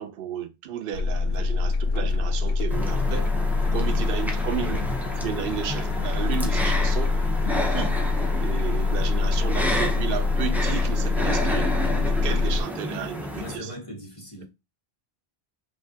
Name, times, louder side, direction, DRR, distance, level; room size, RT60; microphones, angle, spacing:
voice 1, 0.0-3.3 3.7-7.2 7.7-7.9 8.4-13.7, right 9 dB, 70° right, 0.7 m, -33 dB
sound 1, 0.9-12.6, left 3 dB, 70° left, 0.8 m, -25 dB
sound 2, 2.7-13.6, left 1 dB, ahead, 0.5 m, -31 dB
voice 2, 3.6-4.0 13.4-14.4, right 1 dB, 30° left, 1.5 m, -39 dB
5.8 x 2.6 x 2.7 m
omnidirectional pair, 1.0 m